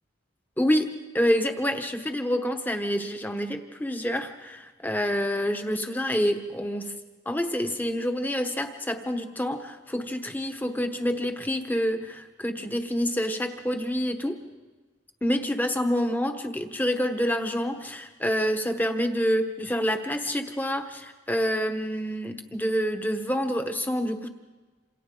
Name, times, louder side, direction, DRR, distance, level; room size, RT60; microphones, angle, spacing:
voice 1, 0.6-6.9 7.3-14.4 15.2-24.3, equal, 10° left, 6 dB, 1.1 m, -27 dB
27.5 x 27.5 x 3.9 m, 1.3 s
head